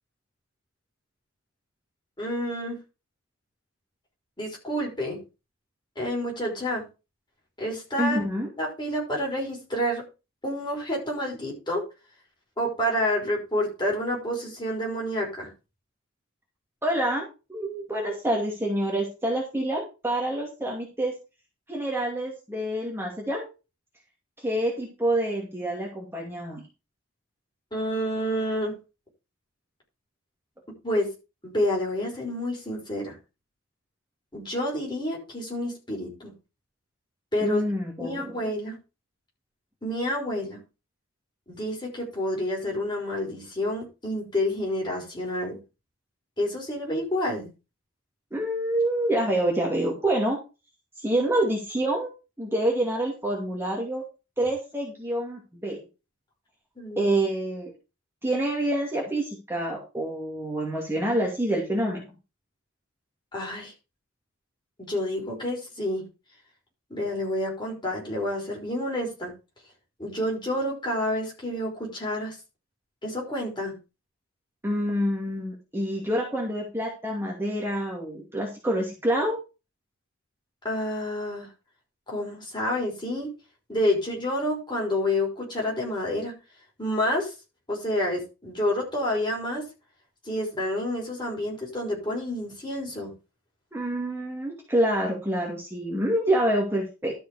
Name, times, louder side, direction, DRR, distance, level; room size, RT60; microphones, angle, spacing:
voice 1, 2.2-2.8 4.4-5.2 5.9-6.8 7.6-8.2 8.6-10.0 10.4-11.8 12.6-15.5 27.7-28.7 30.8-31.1 31.4-33.1 34.3-36.3 37.3-37.6 38.0-38.8 39.8-40.6 41.5-45.6 46.4-47.5 56.8-57.1 63.3-63.7 64.8-66.1 66.9-69.3 70.0-72.4 73.0-73.7 80.6-81.5 82.1-83.3 83.7-86.3 86.8-87.3 87.7-89.6 90.3-93.1, left 1 dB, 20° left, -1 dB, 5.1 m, -29 dB
voice 2, 8.0-8.5 16.8-21.1 21.7-23.5 24.4-26.7 37.4-38.3 48.3-50.4 51.0-52.1 52.4-54.0 54.4-55.8 57.0-57.7 58.2-62.0 74.6-79.4 93.7-97.1, right 1 dB, 10° right, -2 dB, 2.5 m, -27 dB
12.5 x 5.5 x 5.0 m, 0.29 s
head